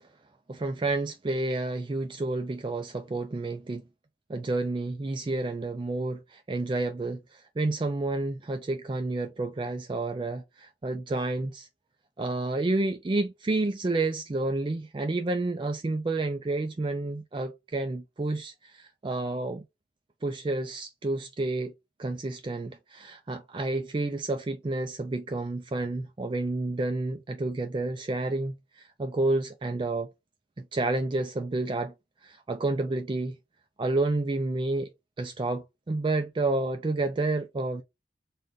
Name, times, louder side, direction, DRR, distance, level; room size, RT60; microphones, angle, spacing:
voice 1, 0.5-3.8 4.3-11.7 12.2-19.6 20.2-21.7 22.0-30.1 30.6-31.9 32.2-33.3 33.8-34.9 35.2-37.8, right 2 dB, 30° right, 0.3 m, -30 dB
3.9 x 2.4 x 3.8 m
head